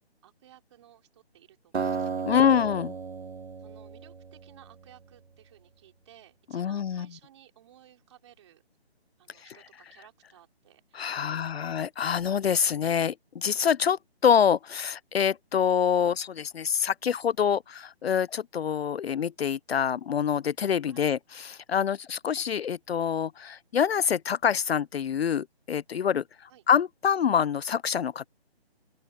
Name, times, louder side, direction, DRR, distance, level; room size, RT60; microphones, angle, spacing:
voice 1, 0.2-2.6 3.6-8.6 9.2-11.7 20.9-21.1 26.5-26.6, right 12 dB, 25° right, 4.5 m, -57 dB
Acoustic guitar, 1.7-4.9, right 5 dB, 80° right, 1.3 m, -34 dB
voice 2, 2.3-2.9 6.5-7.1 10.9-28.3, left 8 dB, 70° left, 0.5 m, -26 dB
open air
figure-of-eight pair, 160°, 32 cm